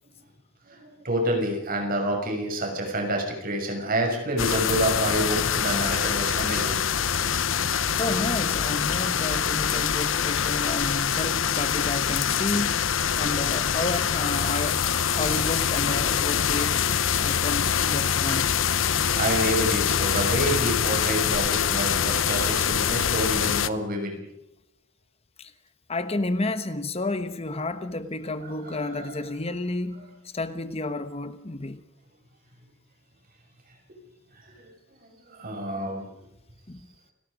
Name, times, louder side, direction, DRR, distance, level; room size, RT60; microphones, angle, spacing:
voice 1, 0.6-6.8 15.1-15.4 18.8-24.2 28.4-29.1 34.3-34.7 35.3-36.1, right 1 dB, 50° right, 6.5 m, -28 dB
sound 1, 4.4-23.7, left 8 dB, 80° left, 0.9 m, -25 dB
voice 2, 7.9-12.9 13.2-14.8 15.1-16.8 17.2-18.5 25.4-25.5 25.9-31.8 36.7-36.8, left 2 dB, 30° left, 1.1 m, -31 dB
29.0 x 19.5 x 5.1 m
head